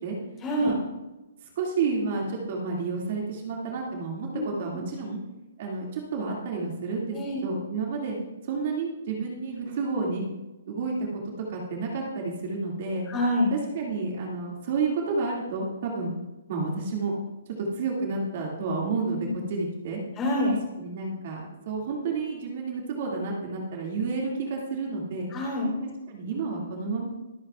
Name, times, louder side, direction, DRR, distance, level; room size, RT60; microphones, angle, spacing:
voice 1, 0.4-0.7 4.3-4.4 7.1-7.4 13.1-13.5 19.2-19.3 20.2-20.5 25.3-25.7, left 1 dB, 15° left, -3 dB, 3.9 m, -26 dB
voice 2, 1.4-5.2 5.6-8.2 8.4-10.2 10.7-11.2 11.5-13.1 13.5-16.1 16.5-17.1 17.5-20.0 20.8-25.3 25.8-27.1, right 4 dB, 40° right, -2 dB, 2.2 m, -30 dB
24.0 x 8.8 x 2.4 m, 1.1 s
hypercardioid pair, 170°, 0 cm